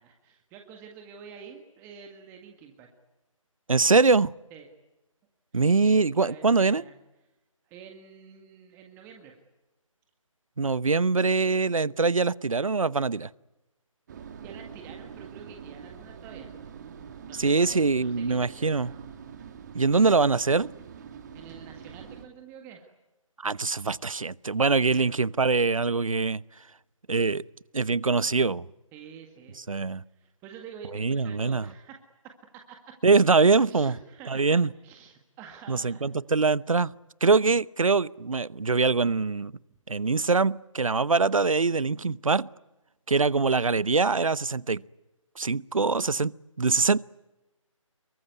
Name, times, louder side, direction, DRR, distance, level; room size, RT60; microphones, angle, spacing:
voice 1, 0.0-2.9 4.5-4.7 5.5-6.9 7.7-9.4 14.4-16.5 17.2-19.1 19.9-20.1 21.3-22.9 24.9-25.1 28.9-29.6 30.2-33.0 33.7-36.1, right 7 dB, 15° right, 1.8 m, -47 dB
voice 2, 3.7-4.3 5.5-6.8 10.6-13.3 17.3-18.9 19.7-20.7 23.4-26.4 27.1-27.4 27.7-28.6 29.7-30.0 30.9-31.7 33.0-33.9 34.3-34.7 35.7-36.9 37.2-39.5 39.9-42.5 43.1-44.8 45.4-47.0, right 4 dB, 75° right, 0.9 m, -23 dB
sound 1, 14.1-22.3, right 7 dB, 30° right, 2.3 m, -44 dB
26.0 x 23.5 x 9.6 m
figure-of-eight pair, 150°, 17 cm